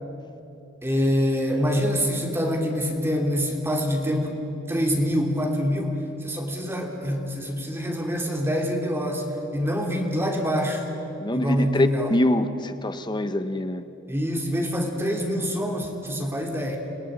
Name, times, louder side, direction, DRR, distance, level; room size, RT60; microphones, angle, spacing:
voice 1, 0.8-4.4 4.7-9.3 9.5-10.8 11.3-12.1 14.1-16.8, equal, 10° right, 1 dB, 2.8 m, -25 dB
voice 2, 11.2-13.8, left 1 dB, 20° left, 10 dB, 0.9 m, -24 dB
28.0 x 18.0 x 9.6 m, 2.9 s
head